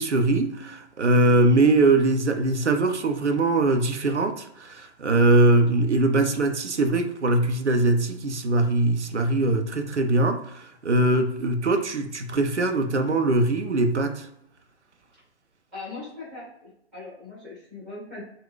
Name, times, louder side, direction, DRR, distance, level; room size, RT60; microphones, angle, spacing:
voice 1, 0.0-14.3, right 2 dB, 85° right, 7 dB, 0.6 m, -22 dB
voice 2, 15.7-18.2, left 3 dB, ahead, -12 dB, 0.5 m, -40 dB
2.5 x 2.2 x 3.7 m, 0.76 s
figure-of-eight pair, 130°, 34 cm